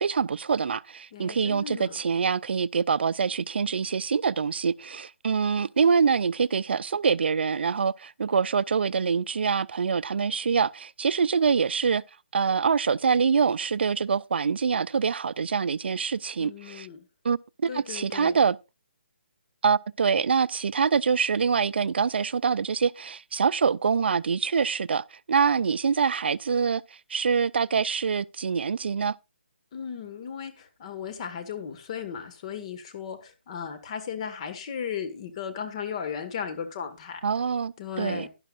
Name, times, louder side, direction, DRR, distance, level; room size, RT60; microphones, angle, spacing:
voice 1, 0.0-12.0 12.3-16.9 17.2-17.4 17.7-18.6 19.6-26.8 27.1-29.1 37.2-38.3, right 6 dB, 60° right, 0.4 m, -25 dB
voice 2, 1.1-2.0 16.4-17.1 17.7-18.4 29.7-37.2 37.8-38.3, left 7 dB, 30° left, 1.5 m, -36 dB
11.5 x 11.0 x 2.4 m
hypercardioid pair, 165°, 6 cm